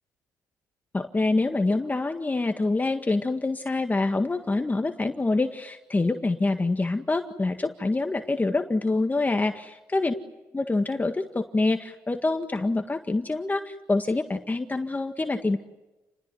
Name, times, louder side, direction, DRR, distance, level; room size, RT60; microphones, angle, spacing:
voice 1, 0.9-9.5 9.9-10.1 10.5-15.6, left 2 dB, 20° left, 6 dB, 1.8 m, -26 dB
29.5 x 20.5 x 9.5 m, 1.1 s
supercardioid pair, 60°, 7 cm